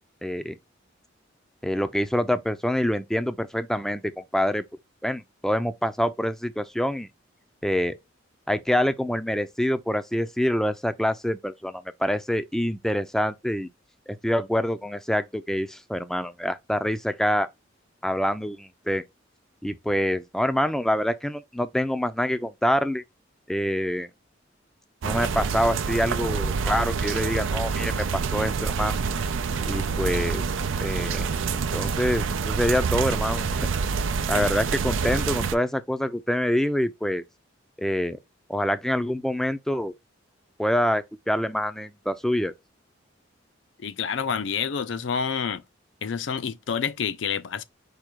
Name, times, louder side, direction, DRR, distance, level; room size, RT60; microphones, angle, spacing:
voice 1, 0.2-0.5 1.6-4.6 5.0-7.1 7.6-8.0 8.5-13.7 14.1-17.5 18.0-19.0 19.6-23.0 23.5-24.1 25.0-29.0 29.7-30.4 30.8-33.7 34.3-37.2 37.8-38.2 38.5-39.9 40.6-42.5, equal, ahead, 0.4 m, -26 dB
sound 1, 25.0-35.6, right 5 dB, 80° right, 0.5 m, -27 dB
voice 2, 43.8-45.6 46.0-47.6, left 6 dB, 65° left, 0.5 m, -28 dB
4.9 x 2.3 x 4.4 m
head